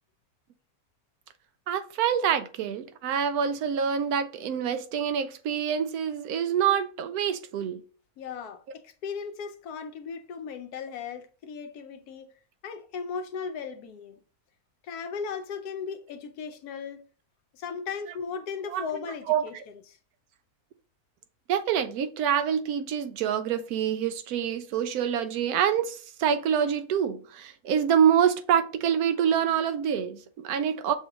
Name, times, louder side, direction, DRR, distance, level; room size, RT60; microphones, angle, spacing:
voice 1, 1.7-7.8 18.7-18.8 19.3-19.4 21.5-30.9, right 8 dB, 80° right, 1.1 m, -26 dB
voice 2, 8.2-12.3 12.6-14.2 14.8-17.1 17.5-20.0, left 6 dB, 85° left, 1.2 m, -37 dB
6.9 x 2.4 x 2.9 m
omnidirectional pair, 1.6 m